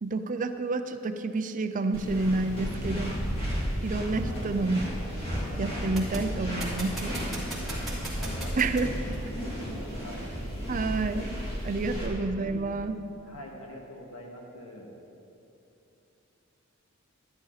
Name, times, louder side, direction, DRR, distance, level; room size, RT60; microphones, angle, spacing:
voice 1, 0.0-3.1 3.8-4.8 5.6-7.2 8.6-8.9 10.7-11.4 11.6-13.0, right 3 dB, 40° right, 9 dB, 0.5 m, -29 dB
sound 1, 1.9-12.1, equal, 30° left, 2.8 m, -34 dB
voice 2, 4.2-4.5 7.7-8.5 8.8-10.3 11.9-12.1 12.4-12.6 13.3-14.9, equal, 80° left, 0 dB, 1.8 m, -45 dB
sound 2, 4.5-10.7, right 1 dB, ahead, 3.0 m, -38 dB
13.0 x 11.5 x 4.1 m, 2.8 s
head